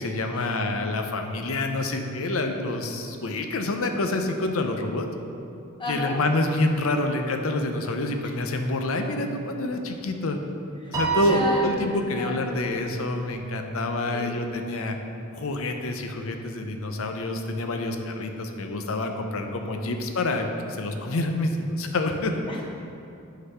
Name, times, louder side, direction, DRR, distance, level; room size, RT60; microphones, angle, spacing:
voice 1, 0.0-5.1 5.9-10.4 10.9-15.0 15.3-22.3, left 2 dB, 65° left, 5 dB, 0.7 m, -27 dB
voice 2, 5.8-6.2 8.2-8.3 10.8-11.0 11.2-11.8 12.1-12.6 14.1-14.3 19.8-19.9 22.5-22.6, left 1 dB, 25° left, -2 dB, 1.1 m, -31 dB
Piano, 10.9-12.5, right 5 dB, 15° right, 1.5 m, -29 dB
8.2 x 4.1 x 5.6 m, 2.7 s
head